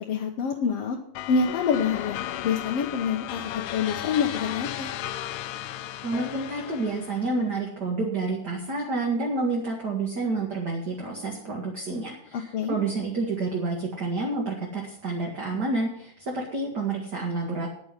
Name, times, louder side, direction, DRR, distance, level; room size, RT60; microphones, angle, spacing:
voice 1, 0.1-1.0 1.3-2.2 2.4-4.9 12.3-12.8, left 6 dB, 60° left, 0 dB, 1.7 m, -26 dB
sound 1, 1.1-7.4, left 12 dB, 80° left, 1.7 m, -35 dB
voice 2, 6.0-17.7, right 3 dB, 35° right, -1 dB, 2.0 m, -29 dB
9.8 x 9.4 x 7.5 m, 0.72 s
omnidirectional pair, 3.9 m